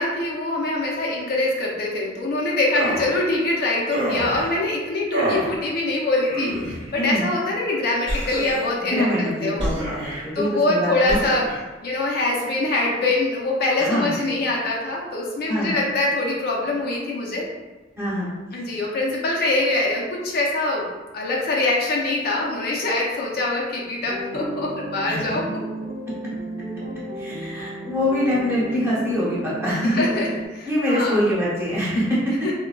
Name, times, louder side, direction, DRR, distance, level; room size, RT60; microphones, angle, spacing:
voice 1, 0.0-9.7 10.4-11.5 11.8-17.5 18.5-20.9 21.1-25.6 29.9-31.2 32.4-32.5, left 2 dB, 55° left, -3 dB, 0.5 m, -24 dB
sound 1, 2.7-3.1 3.9-4.5 5.1-5.5 6.2-6.9 8.1-8.8 9.6-10.2 11.1-11.6, right 1 dB, 90° right, 1.0 m, -27 dB
voice 2, 8.9-11.2 13.8-14.1 15.5-15.7 18.0-18.3 25.1-25.2 27.2-30.1 30.6-32.3, equal, 15° right, -8 dB, 1.0 m, -24 dB
sound 2, 24.0-30.5, right 1 dB, 30° right, 0.6 m, -33 dB
3.7 x 2.2 x 2.2 m, 1.1 s
head